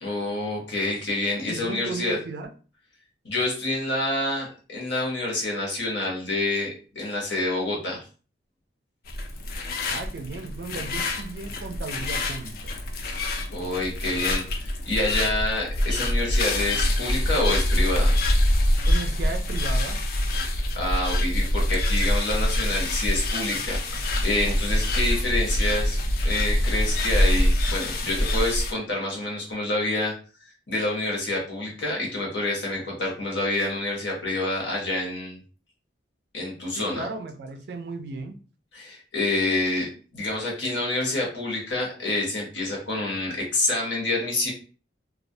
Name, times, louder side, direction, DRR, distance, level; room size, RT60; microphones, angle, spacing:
voice 1, 0.0-2.2 3.2-6.7 6.9-8.0 13.5-18.2 20.7-26.0 26.2-30.1 30.7-35.4 36.3-37.1 38.7-44.5, left 2 dB, 80° left, -2 dB, 0.9 m, -27 dB
voice 2, 1.5-2.5 9.9-12.7 18.9-20.0 36.8-38.4, right 3 dB, 60° right, 6 dB, 0.3 m, -35 dB
sound 1, 9.1-28.7, left 1 dB, 50° left, 0.4 m, -25 dB
2.3 x 2.0 x 2.6 m, 0.37 s
head